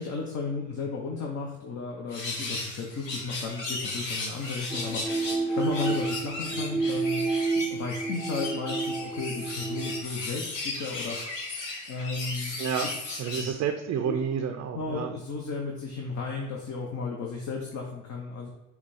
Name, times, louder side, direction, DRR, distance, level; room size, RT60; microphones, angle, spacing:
voice 1, 0.0-5.1 5.6-7.2 7.6-11.2 11.9-12.6 12.8-12.9 13.3-13.5 14.0-14.2 14.7-18.5, left 4 dB, 45° left, -1 dB, 1.0 m, -34 dB
sound 1, 2.1-13.5, left 2 dB, 85° left, 1.0 m, -36 dB
sound 2, 4.7-10.0, right 4 dB, ahead, 0.6 m, -30 dB
voice 2, 13.2-15.1, right 7 dB, 45° right, 5 dB, 0.5 m, -30 dB
5.6 x 2.3 x 4.2 m, 0.94 s
hypercardioid pair, 55°, 37 cm